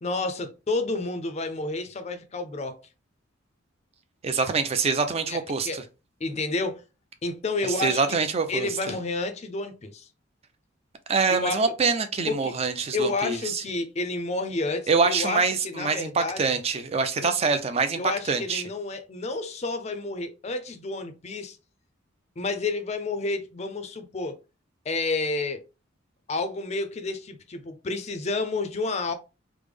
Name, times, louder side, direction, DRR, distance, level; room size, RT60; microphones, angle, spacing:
voice 1, 0.0-2.8 5.3-5.8 6.2-6.8 7.2-8.2 8.5-10.1 11.3-11.6 12.3-12.5 12.9-16.4 17.2-17.3 18.0-21.6 22.4-24.4 24.9-25.6 26.3-29.1, left 3 dB, 35° left, 0.4 m, -30 dB
voice 2, 4.2-5.8 7.6-8.8 11.1-13.6 14.9-18.6, right 4 dB, 30° right, 0.4 m, -25 dB
3.3 x 2.0 x 3.3 m
head